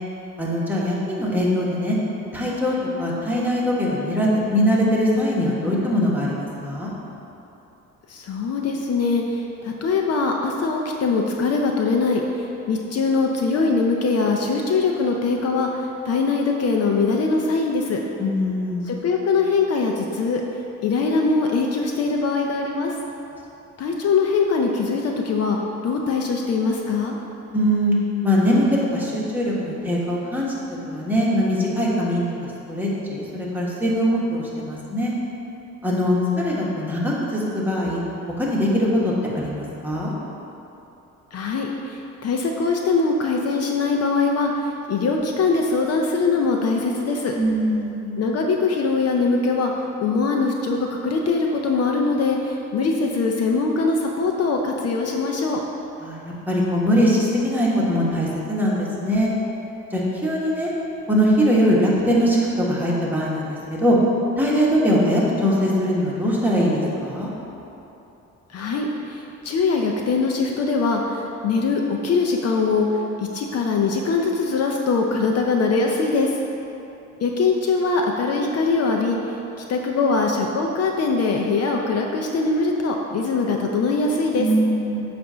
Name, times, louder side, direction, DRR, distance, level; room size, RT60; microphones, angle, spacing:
voice 1, 0.4-1.9 2.3-6.9 18.2-18.9 27.5-27.9 28.2-30.5 30.8-32.2 32.7-35.1 35.8-38.0 38.4-40.1 47.3-48.2 56.0-59.3 59.9-60.7 61.1-64.0 64.4-67.3 84.4-85.0, equal, 5° right, -6 dB, 1.4 m, -21 dB
voice 2, 8.1-18.0 18.9-20.4 20.8-22.9 23.8-25.6 25.8-27.2 41.3-47.3 48.2-55.6 68.5-76.4 77.2-79.2 79.7-84.5, left 4 dB, 55° left, 1 dB, 0.6 m, -22 dB
7.8 x 2.6 x 5.6 m, 2.9 s
cardioid pair, 90°, 30 cm